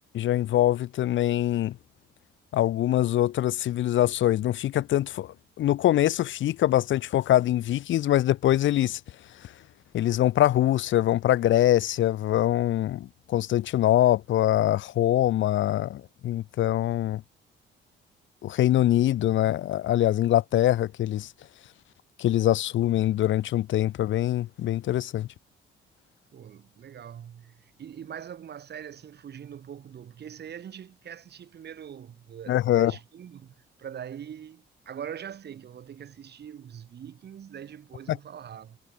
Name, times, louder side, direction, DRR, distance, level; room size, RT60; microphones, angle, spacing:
voice 1, 0.1-1.8 2.5-9.0 9.9-17.2 18.4-21.3 22.2-25.3 32.5-32.9 38.1-38.2, left 13 dB, 75° left, 1.1 m, -23 dB
voice 2, 26.3-38.8, right 9 dB, 55° right, 2.6 m, -42 dB
cardioid pair, 90°, 20 cm